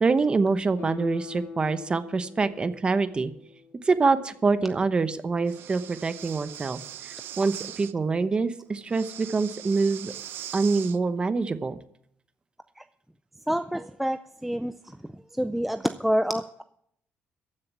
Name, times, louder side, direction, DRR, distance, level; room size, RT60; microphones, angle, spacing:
voice 1, 0.0-3.3 3.8-10.1 10.5-11.8, right 4 dB, 25° right, 12 dB, 0.9 m, -25 dB
Guitar, 0.8-4.0 4.4-4.5, left 6 dB, 90° left, 3.4 m, -42 dB
Breathing, 5.4-7.9 8.9-11.0, right 11 dB, 70° right, 0.6 m, -41 dB
voice 2, 13.5-14.7 15.4-16.6, equal, 5° right, 9 dB, 0.4 m, -27 dB
14.5 x 6.6 x 8.3 m, 0.69 s
cardioid pair, 130°, 4 cm